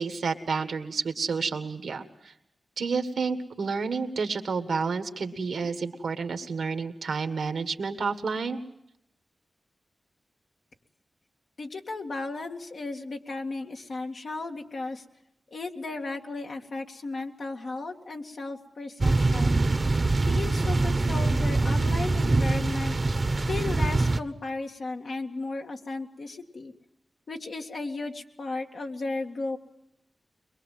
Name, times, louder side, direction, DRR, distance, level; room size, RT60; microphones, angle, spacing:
voice 1, 0.0-2.3 2.8-8.6, right 5 dB, 85° right, 8 dB, 1.7 m, -30 dB
voice 2, 11.6-15.0 15.5-19.6 20.3-22.9 23.5-26.7 27.3-29.6, left 3 dB, 70° left, 2 dB, 2.1 m, -35 dB
sound 1, 19.0-24.2, right 2 dB, 45° right, 1.0 m, -24 dB
23.0 x 22.5 x 7.4 m, 0.81 s
cardioid pair, 55°, 0 cm